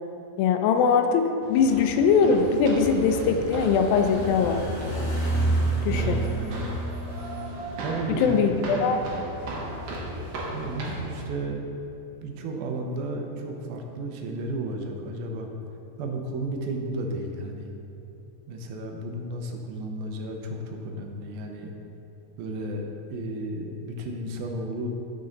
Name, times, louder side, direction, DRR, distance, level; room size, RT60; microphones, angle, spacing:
voice 1, 0.4-4.6 5.8-6.2 8.2-9.0, left 5 dB, 85° left, 6 dB, 2.3 m, -21 dB
sound 1, 1.4-11.2, right 1 dB, 65° right, 1.5 m, -36 dB
sound 2, 1.8-8.1, right 2 dB, 40° left, 1.5 m, -30 dB
voice 2, 5.9-6.7 7.8-9.2 10.5-11.7 12.2-15.5 16.0-17.7 18.5-21.7 22.4-24.9, right 1 dB, 85° right, 3 dB, 2.7 m, -33 dB
9.1 x 6.7 x 3.9 m, 2.8 s
omnidirectional pair, 4.2 m